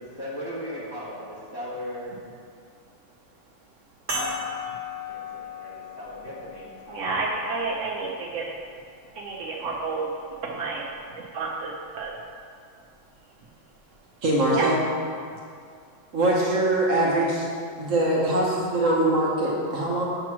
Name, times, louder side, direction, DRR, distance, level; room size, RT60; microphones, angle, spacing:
voice 1, 0.0-2.1 4.1-4.6 5.1-7.0 7.3-7.4, equal, 15° left, -8 dB, 1.0 m, -37 dB
sound 1, 4.1-8.9 9.7-9.8 11.9-12.0, left 3 dB, 30° right, 1.3 m, -36 dB
voice 2, 6.9-8.5 9.1-10.1 10.4-10.8 11.3-12.1 14.5-14.7, right 3 dB, 85° right, -2 dB, 0.6 m, -30 dB
voice 3, 14.2-14.8 16.1-17.5 17.8-20.0, right 1 dB, 55° right, -4 dB, 1.0 m, -22 dB
8.0 x 3.0 x 6.0 m, 2.2 s
omnidirectional pair, 2.0 m